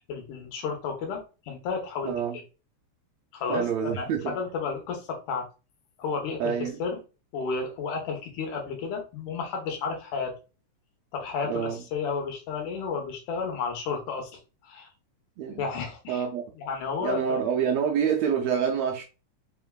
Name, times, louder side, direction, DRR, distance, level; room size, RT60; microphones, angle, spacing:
voice 1, 0.1-2.2 3.3-5.5 6.0-7.0 7.3-10.3 11.1-14.3 14.6-14.9 15.6-16.2 16.6-17.4, left 5 dB, 90° left, 2.5 m, -32 dB
voice 2, 2.0-2.4 3.5-4.4 6.4-6.8 11.5-11.8 15.4-15.6 16.1-16.4 17.0-19.0, right 7 dB, 75° right, 1.6 m, -27 dB
5.0 x 3.4 x 2.2 m
omnidirectional pair, 3.4 m